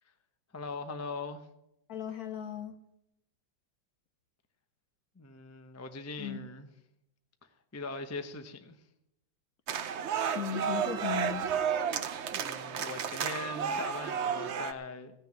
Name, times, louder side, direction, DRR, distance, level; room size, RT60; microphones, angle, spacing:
voice 1, 0.5-1.5 5.2-6.7 7.7-8.8 12.3-15.3, left 3 dB, 20° left, 7 dB, 0.4 m, -41 dB
voice 2, 1.9-2.7 6.2-6.4 10.3-11.5, left 8 dB, 60° left, 9 dB, 1.0 m, -36 dB
sound 1, 9.7-14.7, right 7 dB, 80° right, 0.6 m, -32 dB
16.5 x 6.8 x 9.4 m, 0.85 s
omnidirectional pair, 2.2 m